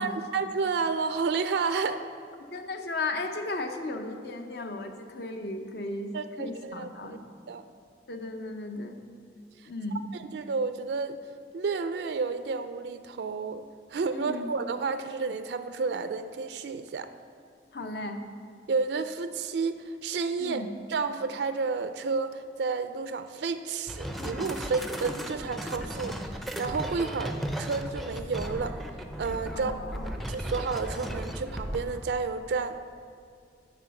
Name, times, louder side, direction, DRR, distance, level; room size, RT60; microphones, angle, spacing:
voice 1, 0.0-2.1 6.1-7.2 7.5-7.6 10.1-11.2 11.5-13.6 13.9-17.1 18.7-20.6 20.9-28.8 29.2-29.7 30.3-32.8, right 4 dB, 65° right, 10 dB, 0.4 m, -31 dB
voice 2, 2.5-7.2 8.1-9.0 9.6-10.1 14.1-14.5 17.7-18.2 20.4-20.7 29.5-30.1, left 2 dB, 60° left, 5 dB, 0.7 m, -35 dB
sound 1, 23.9-32.0, equal, ahead, 0.4 m, -36 dB
11.5 x 3.9 x 6.9 m, 2.4 s
head